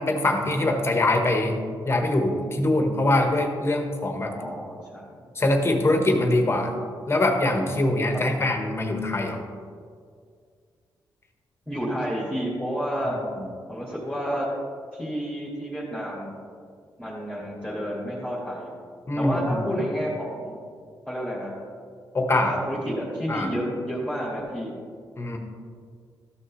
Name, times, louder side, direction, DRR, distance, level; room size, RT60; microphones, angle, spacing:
voice 1, 0.0-1.6 1.8-4.4 5.3-6.7 7.1-9.4 13.1-13.4 19.1-19.7 22.1-22.5 23.3-23.5 25.2-25.4, left 2 dB, 30° left, 4 dB, 1.2 m, -23 dB
voice 2, 4.4-5.2 8.3-8.4 11.7-13.2 13.7-14.5 14.9-16.3 17.0-18.7 19.2-20.5 21.1-21.5 22.3-24.7, equal, ahead, -6 dB, 2.1 m, -30 dB
13.0 x 6.5 x 3.2 m, 2.1 s
cardioid pair, 100°, 8 cm